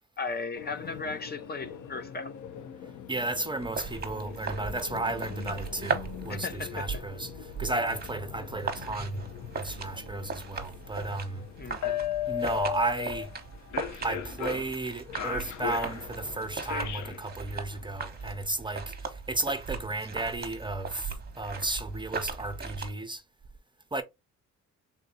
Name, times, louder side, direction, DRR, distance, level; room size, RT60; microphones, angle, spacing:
voice 1, 0.2-2.3 6.3-6.9 11.6-12.0, left 4 dB, 35° left, 0.6 m, -36 dB
sound 1, 0.5-18.3, left 10 dB, 75° left, 0.7 m, -39 dB
voice 2, 3.1-9.3 9.5-11.5 12.3-13.3 14.0-23.2 23.9-24.0, right 2 dB, 15° right, 0.6 m, -33 dB
sound 2, 3.6-22.9, right 4 dB, 30° right, 0.9 m, -39 dB
3.6 x 2.7 x 3.9 m
cardioid pair, 90°, 30 cm